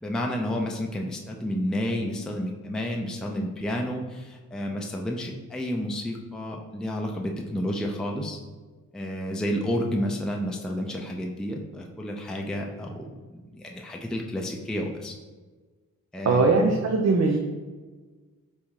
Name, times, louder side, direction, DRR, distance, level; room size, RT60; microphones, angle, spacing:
voice 1, 0.0-8.4 8.9-15.1 16.1-16.7, equal, ahead, 1 dB, 0.5 m, -31 dB
voice 2, 16.2-17.4, right 3 dB, 50° right, 1 dB, 0.6 m, -20 dB
3.5 x 2.7 x 4.6 m, 1.3 s
cardioid pair, 65°, 33 cm